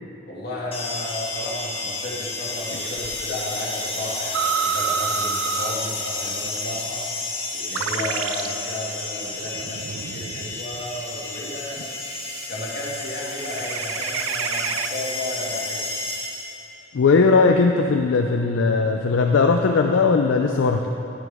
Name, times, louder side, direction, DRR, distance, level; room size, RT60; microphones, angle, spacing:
voice 1, 0.2-7.1 7.5-11.9 12.5-15.8, left 1 dB, 55° left, -5 dB, 2.1 m, -33 dB
sound 1, 0.7-16.7, left 3 dB, 30° left, 1.5 m, -31 dB
sound 2, 3.0-3.2 4.3-5.9 6.5-6.6 7.7-8.6 9.3-11.0 11.9-12.5 13.3-15.0, right 8 dB, 85° right, 0.4 m, -29 dB
voice 2, 16.9-20.9, left 4 dB, 75° left, 4 dB, 0.4 m, -18 dB
11.0 x 8.9 x 3.5 m, 2.8 s
head